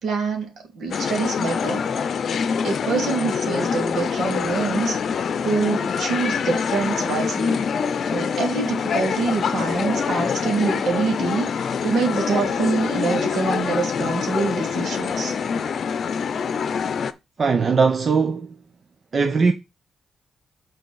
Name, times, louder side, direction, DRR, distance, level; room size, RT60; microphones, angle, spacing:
voice 1, 0.0-1.8 2.6-7.6 8.1-15.4, right 4 dB, 75° right, 2.4 m, -25 dB
sound 1, 0.9-17.1, left 6 dB, 65° left, 0.7 m, -25 dB
voice 2, 17.4-18.6 19.1-19.5, right 5 dB, 50° right, 1.0 m, -19 dB
6.7 x 4.0 x 5.7 m
supercardioid pair, 60°, 0 cm